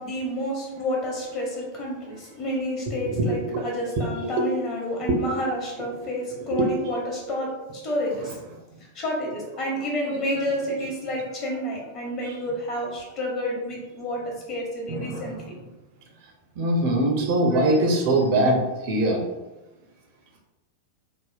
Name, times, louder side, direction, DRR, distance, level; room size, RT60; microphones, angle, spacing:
voice 1, 0.0-8.4 8.9-15.4, equal, 35° left, -2 dB, 1.0 m, -30 dB
voice 2, 3.2-3.6 5.3-5.4 6.5-6.7 14.9-15.2 16.6-18.6 18.9-19.2, right 1 dB, 50° right, 1 dB, 0.5 m, -22 dB
3.5 x 2.1 x 2.4 m, 1.0 s
figure-of-eight pair, 90°, 0 cm